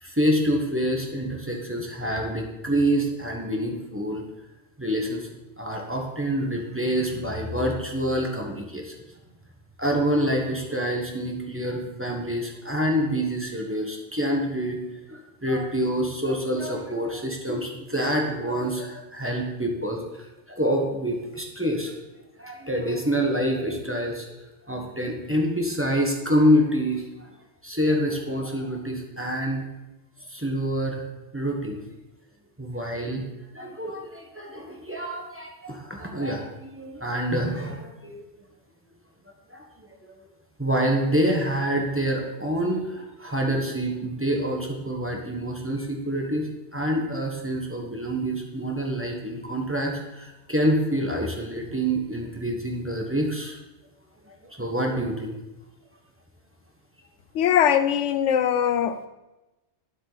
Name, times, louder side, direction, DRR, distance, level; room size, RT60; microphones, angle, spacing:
voice 1, 0.0-4.2 4.8-5.3 5.6-8.9 9.8-14.8 15.1-20.0 20.5-21.9 22.4-24.3 24.7-27.3 27.6-29.6 30.3-31.1 31.3-31.8 32.6-33.3 33.5-38.2 39.5-40.1 40.6-53.6 54.3-55.4, equal, 10° right, 0 dB, 1.2 m, -27 dB
voice 2, 57.3-59.1, left 9 dB, 85° left, 12 dB, 0.9 m, -21 dB
9.8 x 7.6 x 4.1 m, 1.0 s
omnidirectional pair, 1.2 m